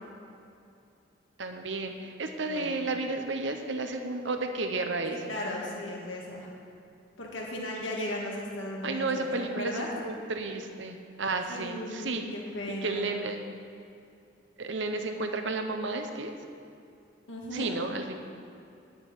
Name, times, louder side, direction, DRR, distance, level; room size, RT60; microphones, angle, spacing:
voice 1, 1.4-5.2 8.8-12.2 12.7-13.4 14.6-16.3 17.5-18.1, right 3 dB, 75° right, 6 dB, 0.9 m, -32 dB
voice 2, 5.1-6.5 7.2-9.3 9.5-9.9 11.5-13.0 17.3-17.7, left 1 dB, 85° left, -2 dB, 2.0 m, -36 dB
9.9 x 6.8 x 8.4 m, 2.6 s
head